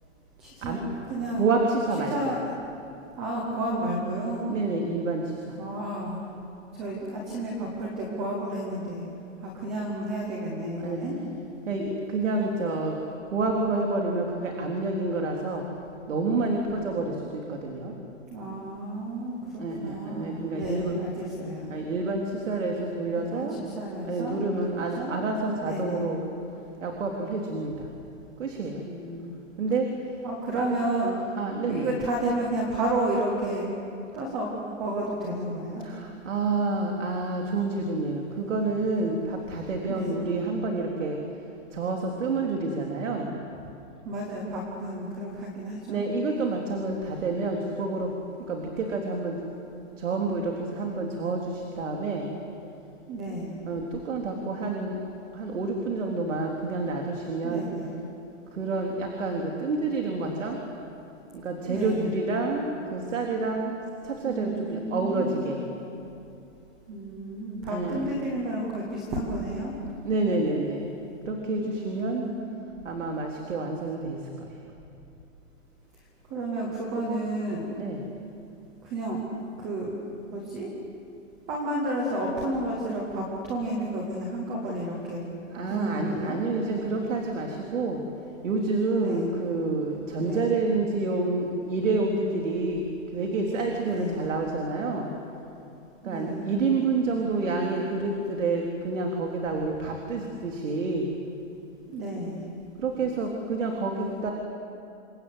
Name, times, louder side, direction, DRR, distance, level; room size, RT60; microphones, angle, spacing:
voice 1, 0.4-0.8 1.1-1.5 2.1-2.4 3.2-4.4 5.6-6.2 6.7-9.0 9.4-11.2 18.3-21.7 23.2-25.2 25.6-26.1 28.8-29.4 30.2-31.2 31.7-33.7 34.1-35.8 39.9-40.1 44.0-46.0 53.1-53.6 57.4-58.0 61.6-62.2 64.2-65.6 66.9-69.8 71.6-72.5 76.3-77.8 78.8-79.2 79.6-79.9 80.3-80.7 81.5-85.3 85.7-86.4 88.9-89.3 90.2-90.5 93.8-94.3 96.0-96.5 101.9-102.4, right 1 dB, 5° right, -2 dB, 0.5 m, -31 dB
voice 2, 1.3-2.2 4.5-5.6 10.8-11.0 11.7-13.0 13.2-15.7 16.1-17.9 19.6-20.9 21.7-23.6 24.0-26.2 26.8-27.9 28.4-28.8 29.6-29.9 30.5-30.6 31.4-31.9 35.8-41.2 41.7-43.3 45.9-48.1 48.5-49.4 50.0-52.3 53.7-57.6 58.5-60.6 61.3-65.6 67.7-68.1 70.0-70.9 71.3-72.3 72.8-74.5 77.8-78.0 85.5-88.0 88.4-92.9 93.1-95.1 96.0-101.1 102.8-104.3, right 3 dB, 70° right, 1 dB, 3.8 m, -28 dB
28.5 x 25.0 x 8.2 m, 2.8 s
hypercardioid pair, 180°, 39 cm